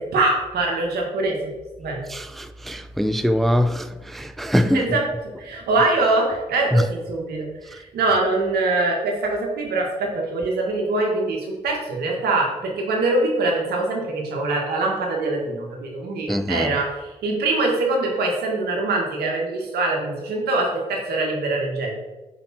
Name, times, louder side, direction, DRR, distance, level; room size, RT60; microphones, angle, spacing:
voice 1, 0.0-1.5 1.8-2.1 4.7-5.0 5.4-22.0, right 2 dB, 80° right, 1.7 m, -23 dB
voice 2, 2.1-5.0 6.7-6.8 16.3-16.8, equal, ahead, 0.4 m, -22 dB
5.4 x 5.3 x 4.3 m
supercardioid pair, 45°, 16 cm